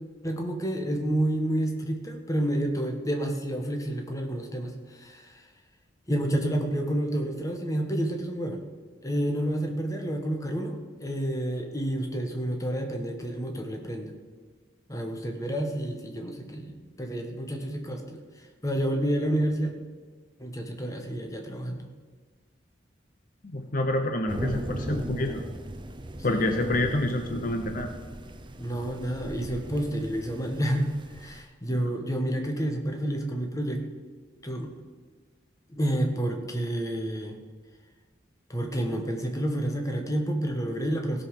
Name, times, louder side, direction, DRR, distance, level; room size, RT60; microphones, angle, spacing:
voice 1, 0.2-5.5 6.1-8.6 9.0-14.1 14.9-19.7 20.4-21.8 26.3-26.8 28.6-33.8 34.4-34.7 35.7-37.4 38.5-41.2, right 1 dB, 20° left, 3 dB, 1.3 m, -29 dB
voice 2, 23.4-25.4 26.2-27.9 31.7-31.8, left 1 dB, 45° left, 5 dB, 0.8 m, -28 dB
sound 1, 24.3-31.4, right 1 dB, 25° right, 0.7 m, -38 dB
16.5 x 5.5 x 6.6 m, 1.4 s
head